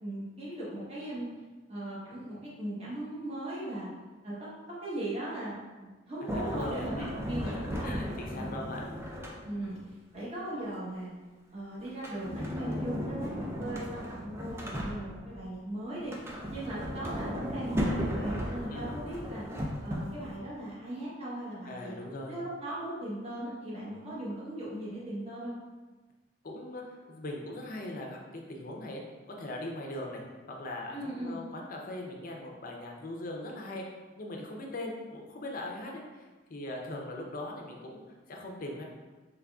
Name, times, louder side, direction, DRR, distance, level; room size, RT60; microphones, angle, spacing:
voice 1, 0.0-1.3 1.7-3.9 4.2-5.5 5.8-6.9 7.3-7.9 8.3-8.5 9.4-9.8 10.1-11.1 11.5-16.1 16.5-19.4 19.8-22.0 22.3-25.6 30.9-31.4, right 1 dB, 30° right, -7 dB, 1.0 m, -38 dB
voice 2, 6.3-9.2 16.7-16.8 18.7-18.9 21.6-22.4 26.4-29.0 29.3-30.2 30.5-33.8 34.2-38.0 38.3-38.8, left 1 dB, 45° left, 0 dB, 0.5 m, -40 dB
Sliding door, 6.3-9.8 11.9-15.4 16.0-20.4, equal, 15° right, 0.4 m, -35 dB
3.6 x 3.3 x 2.3 m, 1.2 s
head